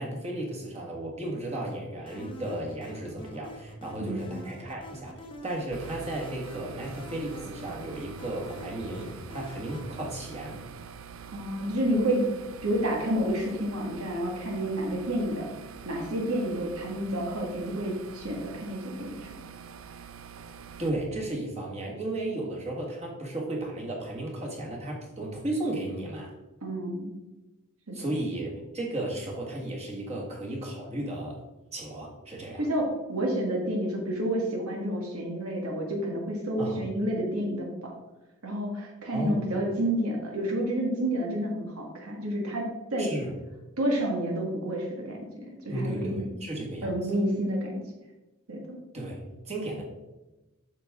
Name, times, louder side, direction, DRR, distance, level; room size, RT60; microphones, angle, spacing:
voice 1, 0.0-10.6 20.8-26.3 27.9-31.4 31.7-32.7 36.6-36.8 39.1-39.4 43.0-43.3 45.7-47.2 48.9-49.8, right 1 dB, 30° right, -1 dB, 1.6 m, -34 dB
sound 1, 2.1-10.0, equal, 25° left, 0.8 m, -45 dB
voice 2, 4.0-4.4 11.3-12.3 12.6-15.5 15.8-19.3 26.6-27.1 27.9-28.0 32.6-37.9 38.4-43.1 43.8-45.2 45.5-46.3 46.8-47.8 48.5-48.8, right 1 dB, 90° right, 0 dB, 1.7 m, -29 dB
sound 2, 5.7-20.9, right 6 dB, 65° right, 0.4 m, -45 dB
8.3 x 6.0 x 3.6 m, 1.1 s
head